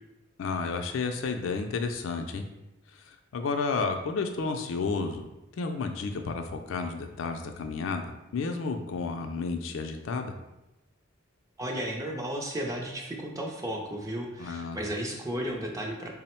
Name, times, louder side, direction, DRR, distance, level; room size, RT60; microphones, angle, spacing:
voice 1, 0.4-2.5 2.9-5.3 5.6-10.3 14.4-14.8, left 4 dB, 65° left, 6 dB, 0.4 m, -31 dB
voice 2, 11.6-16.1, equal, 15° right, 0 dB, 0.4 m, -34 dB
3.7 x 2.0 x 4.2 m, 0.95 s
head